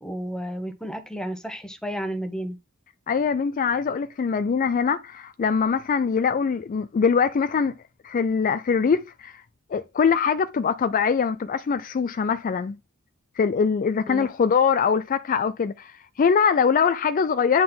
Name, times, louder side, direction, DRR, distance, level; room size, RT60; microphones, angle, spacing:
voice 1, 0.0-2.6 14.0-14.3, equal, 5° left, 1.0 m, -32 dB
voice 2, 3.1-7.7 8.0-9.4 9.7-12.8 13.4-17.6, left 6 dB, 40° left, 0.3 m, -23 dB
9.4 x 4.0 x 3.8 m
head